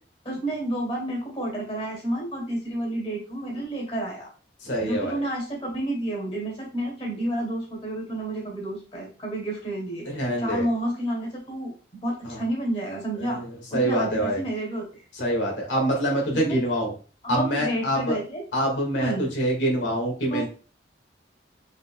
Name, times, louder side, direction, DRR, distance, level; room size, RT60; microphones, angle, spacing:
voice 1, 0.2-4.3 4.8-10.0 10.4-11.7 12.0-13.4 13.7-14.8 16.4-16.6 17.2-18.4 19.0-19.3 20.3-20.5, right 1 dB, 30° left, -2 dB, 2.3 m, -30 dB
voice 2, 4.6-5.2 10.1-10.7 12.2-12.4 13.2-14.4 15.2-16.9 17.3-18.2 18.5-20.5, right 1 dB, 90° left, 0 dB, 1.9 m, -25 dB
5.1 x 4.1 x 2.3 m, 0.38 s
head